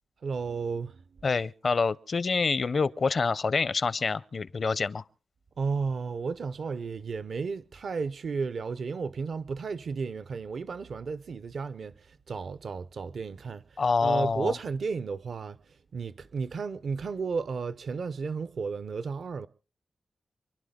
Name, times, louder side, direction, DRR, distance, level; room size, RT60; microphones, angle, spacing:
voice 1, 0.2-1.2 5.6-19.5, right 5 dB, 70° right, 0.7 m, -33 dB
voice 2, 1.2-5.0 13.8-14.5, left 4 dB, 50° left, 0.6 m, -26 dB
28.0 x 11.0 x 3.7 m
wide cardioid pair, 120°, 0 cm